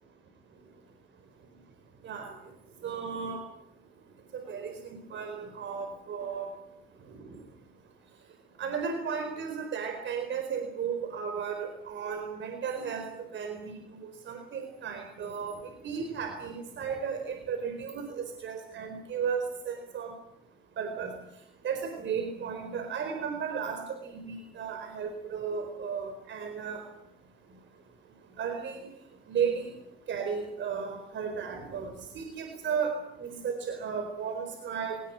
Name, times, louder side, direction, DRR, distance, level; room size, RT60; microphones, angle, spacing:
voice 1, 2.0-2.3 2.8-3.4 4.3-6.5 7.1-7.4 8.6-13.7 14.0-20.1 20.8-21.1 21.6-26.8 28.4-28.9 29.3-29.7 30.1-35.0, right 6 dB, 70° right, 6 dB, 4.5 m, -34 dB
22.5 x 19.5 x 9.0 m, 0.81 s
cardioid pair, 90°, 20 cm